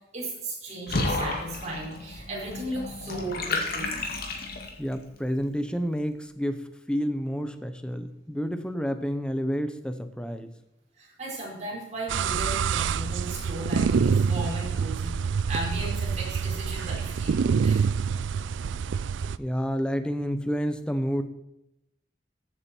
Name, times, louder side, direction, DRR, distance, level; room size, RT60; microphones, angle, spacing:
voice 1, 0.1-4.0 11.0-15.2 15.5-17.9, right 1 dB, 40° right, -4 dB, 4.9 m, -36 dB
Water / Bathtub (filling or washing), 0.9-4.9, left 2 dB, 55° left, 2.2 m, -31 dB
voice 2, 4.8-10.5 19.4-21.2, equal, 5° left, 9 dB, 0.8 m, -29 dB
sound 1, 12.1-19.4, right 6 dB, 80° right, 0.4 m, -26 dB
14.5 x 8.9 x 4.5 m, 0.88 s
head